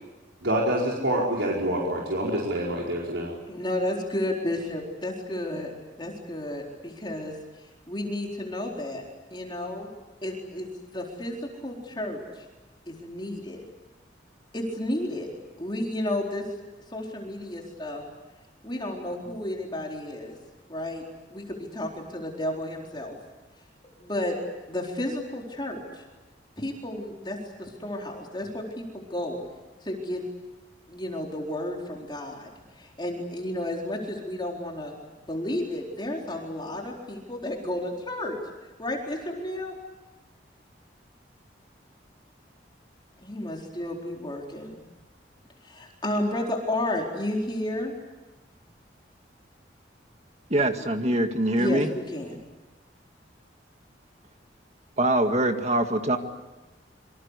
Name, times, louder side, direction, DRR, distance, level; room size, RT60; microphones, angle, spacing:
voice 1, 0.4-3.3, right 1 dB, 85° right, -3 dB, 5.1 m, -26 dB
voice 2, 3.5-5.7 6.0-7.3 7.9-9.0 9.3-9.9 10.2-12.4 12.9-13.6 14.5-15.3 15.6-16.5 16.9-18.0 18.6-20.4 20.7-21.0 21.3-23.2 24.0-24.4 24.7-26.0 26.6-29.4 29.8-30.2 30.9-34.9 35.3-38.4 38.8-39.7 43.2-44.7 45.6-47.9 51.6-52.4, left 1 dB, 25° left, 0 dB, 4.3 m, -32 dB
voice 3, 50.5-51.9 55.0-56.2, right 1 dB, 35° right, 6 dB, 2.0 m, -23 dB
26.5 x 25.0 x 8.4 m, 1.1 s
head